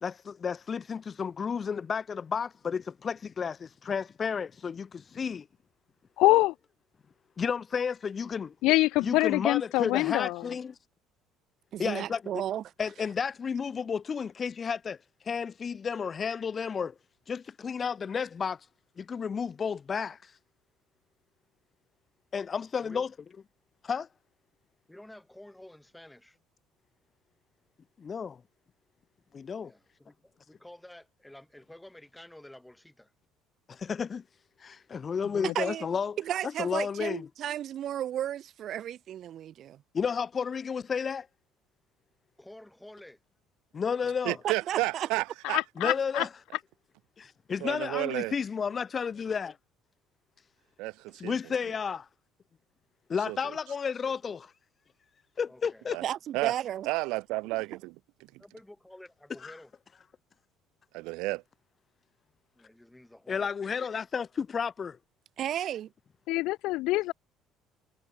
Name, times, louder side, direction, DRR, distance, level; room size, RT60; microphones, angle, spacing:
voice 1, 0.0-5.5 7.4-8.5 9.0-10.8 11.8-12.4 12.8-15.0 15.2-16.9 17.3-18.6 19.0-20.3 22.3-23.1 23.8-24.1 28.0-28.4 29.3-29.7 33.7-34.2 34.6-36.2 36.6-37.3 39.9-41.3 43.7-44.4 45.8-46.3 47.2-49.6 51.2-52.1 53.1-54.5 55.4-56.0 59.4-59.5 63.3-65.0, left 6 dB, 30° left, 0.9 m, -32 dB
voice 2, 6.2-6.5 8.6-10.4 35.3-35.5 45.4-46.2 66.3-67.1, left 19 dB, 75° left, 0.3 m, -25 dB
voice 3, 11.7-12.6 35.5-35.9 36.2-39.8 44.4-45.1 56.0-56.9 65.4-65.9, right 11 dB, 50° right, 2.7 m, -33 dB
voice 4, 22.6-23.1 24.9-26.4 29.6-33.1 42.4-43.2 51.1-51.2 55.5-56.0 58.4-59.7 62.5-63.5, left 1 dB, 5° left, 4.7 m, -51 dB
voice 5, 44.2-46.3 47.6-48.3 50.8-51.3 53.3-53.4 55.9-56.0 56.3-56.5 56.9-57.9 60.9-61.4, right 23 dB, 80° right, 0.4 m, -32 dB
cardioid pair, 130°, 0 cm